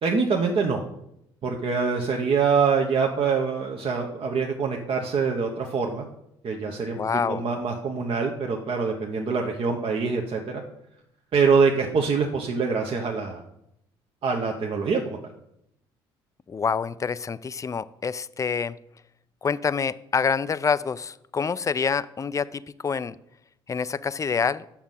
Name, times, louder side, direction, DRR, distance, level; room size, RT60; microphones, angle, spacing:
voice 1, 0.0-0.8 1.4-6.0 6.4-7.0 7.3-10.6 11.3-13.4 14.2-15.2, right 5 dB, 50° right, 1 dB, 1.0 m, -24 dB
voice 2, 7.0-7.5 16.5-18.8 19.4-23.1 23.7-24.6, left 6 dB, 25° left, 17 dB, 0.4 m, -27 dB
7.3 x 6.2 x 5.5 m, 0.79 s
hypercardioid pair, 60°, 12 cm